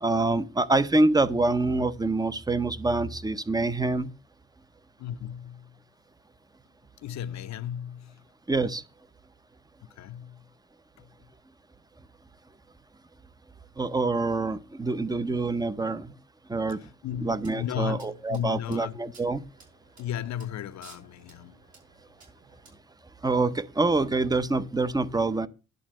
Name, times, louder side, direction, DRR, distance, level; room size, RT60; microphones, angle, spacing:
voice 1, 0.0-4.1 8.5-8.8 13.8-16.1 16.5-16.8 17.2-19.4 23.2-25.5, right 2 dB, 15° right, 0.7 m, -26 dB
voice 2, 5.0-5.8 7.0-8.2 9.9-10.5 11.0-11.1 16.7-19.0 20.0-21.6, left 10 dB, 65° left, 0.8 m, -35 dB
sound 1, 17.1-22.8, right 4 dB, 70° right, 5.3 m, -56 dB
11.0 x 4.1 x 7.5 m
cardioid pair, 90°, 30 cm